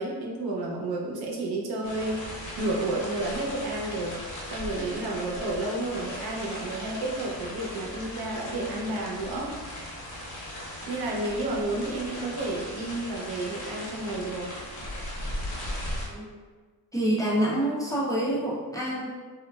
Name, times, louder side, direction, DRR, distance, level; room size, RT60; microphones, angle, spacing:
voice 1, 0.0-9.5 10.9-14.5, right 2 dB, 80° right, -2 dB, 0.7 m, -31 dB
sound 1, 1.8-16.1, left 1 dB, 55° left, 0.8 m, -38 dB
voice 2, 16.9-19.1, right 1 dB, 10° left, -6 dB, 0.4 m, -27 dB
3.0 x 2.4 x 2.2 m, 1.4 s
wide cardioid pair, 130°, 36 cm